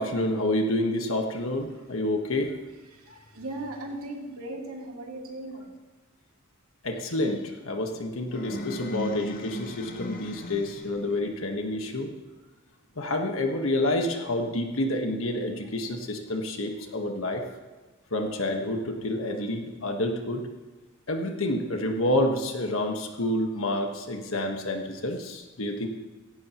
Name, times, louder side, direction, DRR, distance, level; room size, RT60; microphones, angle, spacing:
voice 1, 0.0-2.6 6.8-12.1 13.0-17.5 18.1-20.5 21.1-25.9, left 1 dB, 70° left, 3 dB, 1.4 m, -28 dB
voice 2, 2.9-5.7, right 1 dB, 85° right, -1 dB, 2.6 m, -38 dB
sound 1, 8.3-11.2, left 1 dB, 40° left, 0.9 m, -37 dB
17.0 x 16.0 x 3.1 m, 1.2 s
head